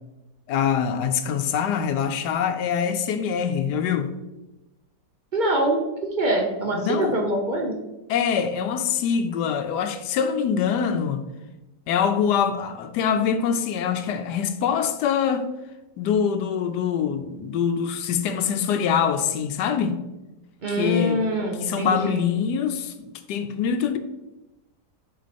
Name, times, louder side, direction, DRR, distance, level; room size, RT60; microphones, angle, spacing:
voice 1, 0.5-4.1 6.7-7.2 8.1-11.2 11.9-15.5 16.0-20.0 20.8-21.3 21.6-22.9 23.3-24.0, left 7 dB, 75° left, 1.2 m, -24 dB
voice 2, 5.3-7.8 20.6-22.3, right 1 dB, 50° right, 0.5 m, -24 dB
6.2 x 4.7 x 4.2 m
omnidirectional pair, 1.9 m